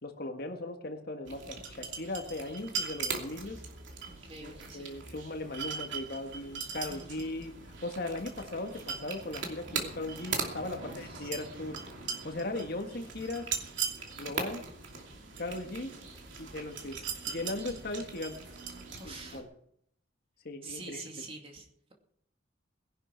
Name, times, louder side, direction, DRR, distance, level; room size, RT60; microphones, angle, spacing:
voice 1, 0.0-3.6 4.4-7.5 7.8-11.8 12.2-13.5 14.2-14.6 15.4-15.9 16.4-17.0 17.3-18.4 19.0-19.5 20.4-21.2, left 2 dB, 50° left, 5 dB, 1.7 m, -38 dB
sound 1, 1.3-19.4, right 5 dB, 70° right, 2.7 m, -40 dB
voice 2, 4.1-5.0 6.9-7.5 10.8-11.5 19.0-19.4 20.6-21.9, right 3 dB, 30° right, 1 dB, 2.5 m, -47 dB
20.0 x 11.0 x 4.6 m, 0.71 s
head